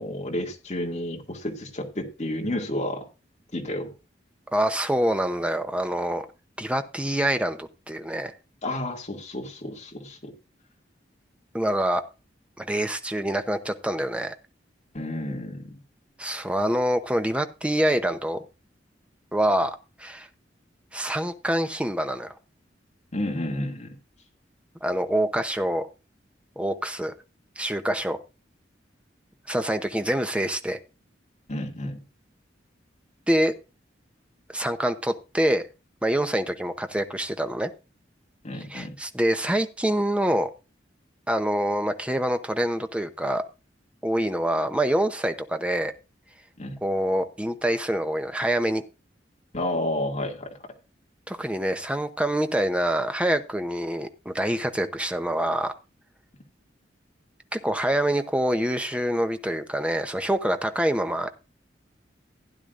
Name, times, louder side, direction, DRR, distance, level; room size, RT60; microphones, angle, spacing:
voice 1, 0.0-3.0 3.5-3.9 8.6-10.3 14.9-15.8 23.1-23.9 31.5-32.0 38.4-38.9 46.6-46.8 49.5-50.6, left 1 dB, 40° left, 1 dB, 2.3 m, -31 dB
voice 2, 4.5-6.3 6.6-8.3 11.5-12.0 12.6-14.3 16.2-18.4 19.3-20.3 20.9-22.3 24.8-25.9 26.6-27.1 27.6-28.2 29.5-30.8 33.3-33.5 34.5-35.6 36.0-37.7 38.7-40.5 41.3-43.4 44.0-45.9 46.8-48.8 51.3-55.7 57.5-61.3, right 1 dB, 5° right, 8 dB, 0.8 m, -26 dB
16.0 x 9.9 x 2.5 m, 0.30 s
head